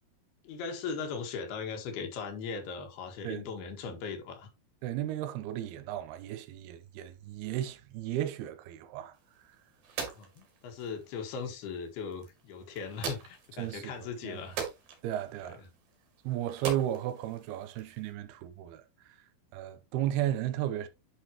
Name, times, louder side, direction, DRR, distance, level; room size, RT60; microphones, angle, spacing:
voice 1, 0.4-4.5 10.0-14.6 15.4-15.6, left 5 dB, 85° left, 3.6 m, -39 dB
voice 2, 4.8-9.2 13.6-14.4 15.0-15.6 16.2-19.2 19.5-20.9, right 12 dB, 85° right, 2.8 m, -34 dB
sound 1, 9.1-18.1, right 7 dB, 70° right, 4.0 m, -43 dB
10.0 x 5.8 x 2.9 m
omnidirectional pair, 4.5 m